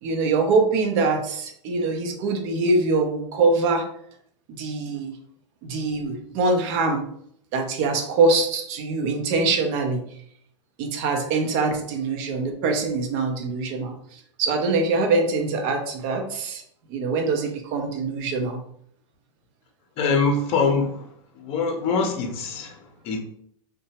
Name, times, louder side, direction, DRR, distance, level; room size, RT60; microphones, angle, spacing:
voice 1, 0.0-3.8 4.5-5.1 5.6-7.0 7.5-10.0 10.8-16.6 16.9-18.6, right 3 dB, 50° right, 3 dB, 0.7 m, -23 dB
voice 2, 20.0-21.1 21.3-23.2, left 4 dB, 40° left, 4 dB, 0.7 m, -24 dB
2.8 x 2.2 x 2.8 m, 0.68 s
hypercardioid pair, 120°, 16 cm